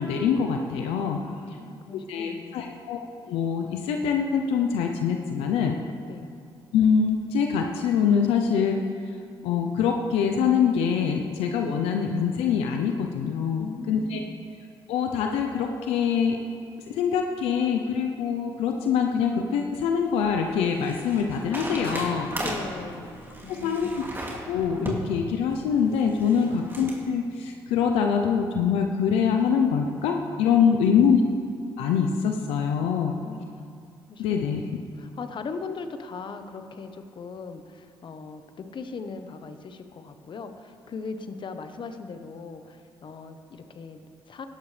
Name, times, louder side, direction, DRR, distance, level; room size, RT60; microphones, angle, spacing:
voice 1, 0.0-1.2 2.1-3.0 3.3-5.8 6.7-8.8 9.4-14.2 14.9-16.4 16.9-22.3 23.5-23.9 24.5-31.2 31.8-33.1 34.2-34.6, left 7 dB, 85° left, 3 dB, 0.7 m, -24 dB
voice 2, 1.2-2.8 6.1-6.3 13.6-14.5 22.4-24.0 26.4-26.6 30.6-31.3 33.0-33.5 34.1-44.5, left 4 dB, 55° left, 8 dB, 1.1 m, -39 dB
sound 1, 19.7-27.0, right 1 dB, 20° right, 2.9 m, -37 dB
17.0 x 12.5 x 3.4 m, 2.3 s
supercardioid pair, 60°, 10 cm